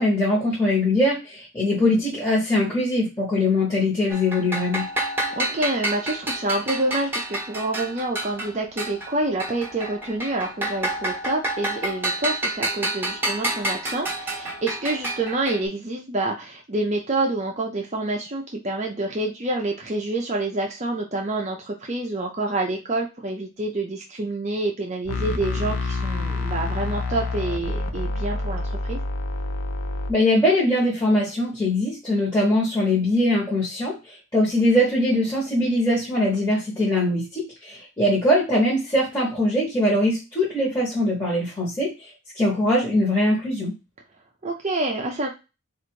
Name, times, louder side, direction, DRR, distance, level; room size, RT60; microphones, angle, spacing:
voice 1, 0.0-4.9 30.1-33.9 34.3-41.9 42.4-43.7, left 1 dB, 15° left, -6 dB, 1.2 m, -21 dB
sound 1, 4.1-9.1 9.4-15.6, right 1 dB, 10° right, 1.0 m, -29 dB
voice 2, 5.4-29.0 44.4-45.3, right 2 dB, 30° right, 1 dB, 0.5 m, -27 dB
sound 2, 25.1-30.1, left 3 dB, 80° left, 0.6 m, -27 dB
4.0 x 2.5 x 4.5 m, 0.28 s
head